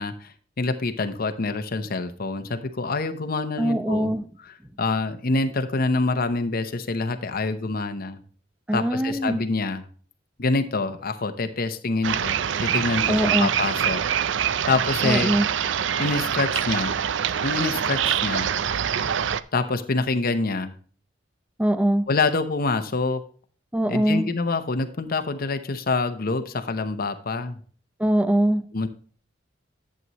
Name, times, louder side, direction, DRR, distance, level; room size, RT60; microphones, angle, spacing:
voice 1, 0.0-4.1 4.4-8.2 8.7-9.8 10.4-12.4 12.6-14.0 14.7-15.3 16.0-17.0 17.4-18.5 19.5-20.7 22.1-23.2 23.9-27.6 28.7-28.9, left 3 dB, 55° left, 0.8 m, -26 dB
voice 2, 3.6-4.2 8.7-9.4 13.1-13.5 15.0-15.5 21.6-22.1 23.7-24.3 28.0-28.6, right 1 dB, 5° right, 0.5 m, -22 dB
sound 1, 12.0-19.4, right 8 dB, 75° right, 0.5 m, -25 dB
11.0 x 7.7 x 3.0 m
head